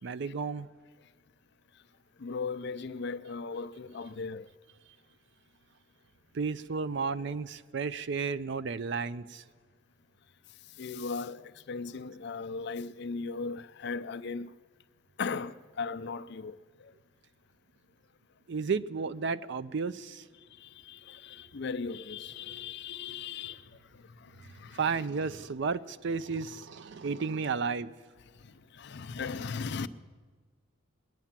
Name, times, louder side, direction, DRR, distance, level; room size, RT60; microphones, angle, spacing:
voice 1, 0.0-0.7 6.3-9.4 18.5-20.2 24.7-27.9, right 5 dB, 60° right, 0.5 m, -33 dB
voice 2, 2.2-4.5 10.8-14.5 15.2-16.5 20.6-23.6 24.6-25.0 28.8-29.9, left 4 dB, 55° left, 0.5 m, -37 dB
20.0 x 9.2 x 7.3 m
head